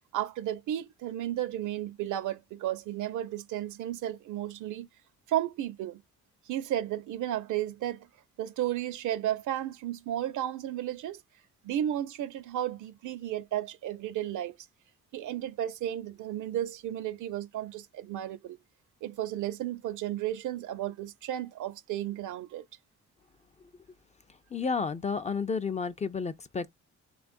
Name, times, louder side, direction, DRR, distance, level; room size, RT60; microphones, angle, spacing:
voice 1, 0.1-4.9 5.3-6.0 6.5-8.0 8.4-11.2 11.6-14.5 15.1-18.6 19.0-22.6, right 12 dB, 75° right, 0.6 m, -33 dB
voice 2, 24.5-26.7, left 5 dB, 25° left, 0.3 m, -31 dB
3.4 x 2.3 x 2.5 m
cardioid pair, 90°, 30 cm